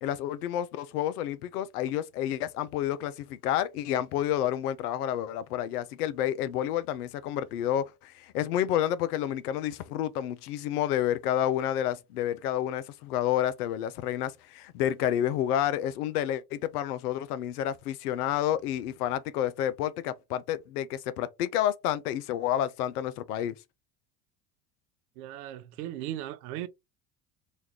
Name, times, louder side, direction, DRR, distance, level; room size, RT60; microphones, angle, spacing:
voice 1, 0.0-23.6, left 11 dB, 85° left, 0.6 m, -29 dB
voice 2, 25.2-26.7, right 13 dB, 80° right, 0.6 m, -37 dB
3.0 x 2.3 x 3.3 m
hypercardioid pair, 75°, 45 cm